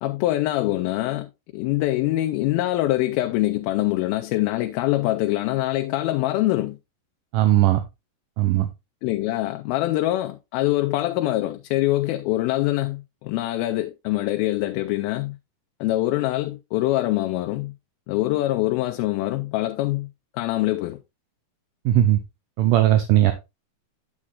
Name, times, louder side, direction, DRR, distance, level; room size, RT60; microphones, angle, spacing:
voice 1, 0.0-1.3 1.5-6.8 9.0-15.4 15.8-17.7 18.1-20.1 20.3-21.0, left 16 dB, 85° left, 2.4 m, -24 dB
voice 2, 7.3-7.8 8.4-8.7 21.9-22.2 22.6-23.3, right 13 dB, 75° right, 2.1 m, -18 dB
8.6 x 8.6 x 2.3 m
omnidirectional pair, 4.2 m